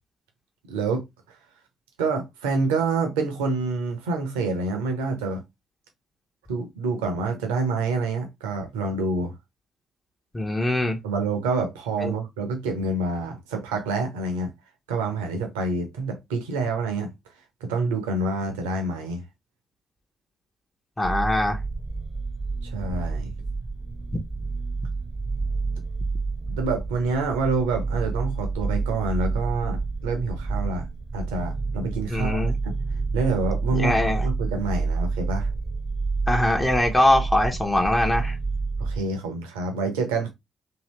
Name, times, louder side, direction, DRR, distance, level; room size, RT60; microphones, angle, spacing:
voice 1, 0.7-1.0 2.0-5.4 6.5-9.3 11.0-14.5 14.9-17.1 17.6-19.2 22.6-23.3 26.5-30.9 31.1-32.8 33.1-35.5 38.8-40.3, right 3 dB, 70° right, 0.7 m, -27 dB
voice 2, 10.3-11.0 12.0-12.1 21.0-21.6 32.1-32.6 33.7-34.3 36.3-38.4, left 1 dB, 20° left, 0.7 m, -22 dB
sound 1, 21.0-39.0, right 4 dB, 15° right, 0.7 m, -29 dB
2.8 x 2.7 x 3.1 m
figure-of-eight pair, 40°, 0 cm